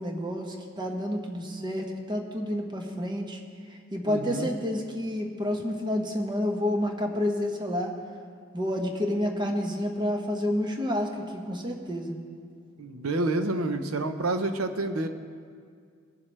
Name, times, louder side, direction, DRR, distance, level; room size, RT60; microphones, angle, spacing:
voice 1, 0.0-3.4 3.7-7.9 8.5-12.2, left 1 dB, 20° right, 2 dB, 1.0 m, -29 dB
voice 2, 4.0-4.5 12.8-15.1, right 2 dB, 80° right, 8 dB, 0.7 m, -28 dB
20.5 x 7.2 x 3.3 m, 2.1 s
head